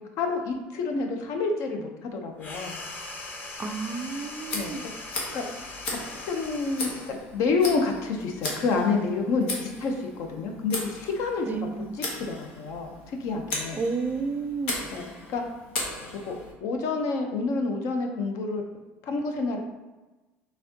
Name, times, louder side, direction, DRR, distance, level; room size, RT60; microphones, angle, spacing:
voice 1, 0.2-2.8 4.5-4.8 5.3-5.4 5.9-6.0 6.2-11.5 12.1-12.9 13.2-13.8 14.9-15.4 16.3-18.6 19.1-19.6, left 4 dB, 65° left, 3 dB, 0.7 m, -28 dB
sound 1, 2.4-7.2, left 2 dB, 35° left, 0.9 m, -40 dB
voice 2, 3.6-4.8 11.4-11.9 13.8-14.8, right 4 dB, 30° right, 8 dB, 0.4 m, -31 dB
Tick, 4.4-16.5, left 2 dB, 90° left, 1.0 m, -37 dB
4.1 x 3.5 x 2.8 m, 1.1 s
supercardioid pair, 90°, 6 cm